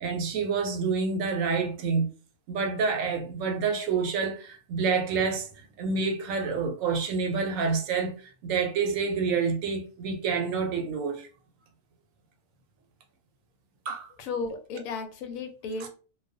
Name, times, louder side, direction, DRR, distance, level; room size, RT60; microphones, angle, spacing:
voice 1, 0.0-2.1 2.5-5.5 5.8-8.2 8.4-11.3 13.9-14.1 15.8-15.9, right 5 dB, 80° right, 1.0 m, -28 dB
voice 2, 14.2-15.9, left 4 dB, 90° left, 1.0 m, -34 dB
2.3 x 2.2 x 2.4 m
omnidirectional pair, 1.4 m